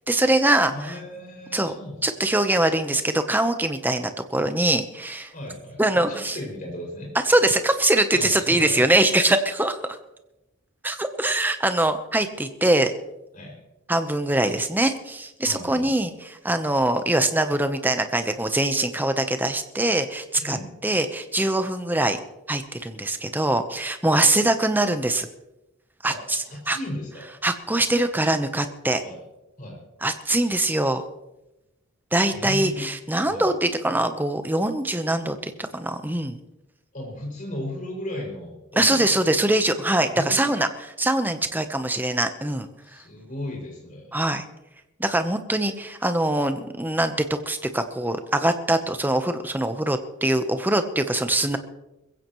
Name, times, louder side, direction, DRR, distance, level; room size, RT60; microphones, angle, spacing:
voice 1, 0.0-0.9 1.5-1.7 2.0-5.3 5.8-6.4 7.3-9.8 10.8-12.9 13.9-20.6 20.8-22.2 22.5-25.3 26.0-26.8 27.4-29.0 30.0-31.0 32.1-36.4 38.8-42.7 44.1-44.4 45.0-51.6, right 1 dB, 10° right, 8 dB, 0.9 m, -23 dB
voice 2, 0.7-2.0 5.3-7.1 8.1-8.9 13.3-13.5 15.4-15.9 20.4-20.7 24.1-24.3 26.1-26.2 26.4-27.2 29.0-29.2 29.6-29.8 32.3-32.8 33.2-33.5 36.9-39.2 40.1-40.6 42.8-44.1, left 1 dB, 40° left, -1 dB, 6.3 m, -35 dB
21.5 x 16.0 x 3.2 m, 0.94 s
head